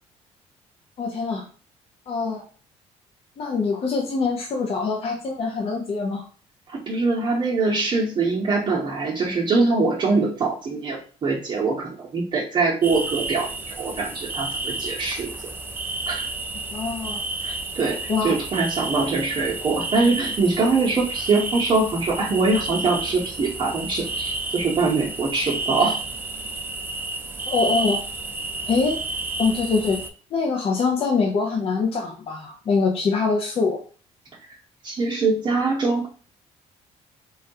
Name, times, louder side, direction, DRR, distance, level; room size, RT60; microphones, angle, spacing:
voice 1, 1.0-1.5 2.1-2.4 3.4-6.3 16.7-17.2 18.1-18.3 27.5-28.0 28.7-29.0 29.4-30.0 30.3-33.8, left 4 dB, 50° left, 1 dB, 0.5 m, -24 dB
voice 2, 6.9-15.3 16.1-16.3 17.4-26.0 34.8-36.1, right 3 dB, 40° right, -4 dB, 0.7 m, -23 dB
sound 1, 12.8-30.1, right 3 dB, 15° right, 0.4 m, -31 dB
3.4 x 2.3 x 2.6 m, 0.40 s
cardioid pair, 105°, 13 cm